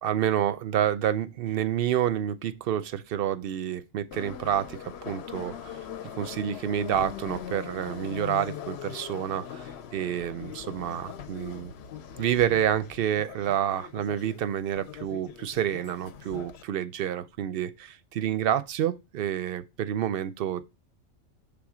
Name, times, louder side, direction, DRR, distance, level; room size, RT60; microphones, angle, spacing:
voice 1, 0.0-5.7 6.2-9.7 9.9-11.7 12.2-20.6, right 10 dB, 60° right, 0.6 m, -28 dB
Subway metro underground, 4.1-16.6, left 9 dB, 65° left, 0.8 m, -41 dB
6.3 x 3.5 x 4.8 m
omnidirectional pair, 1.3 m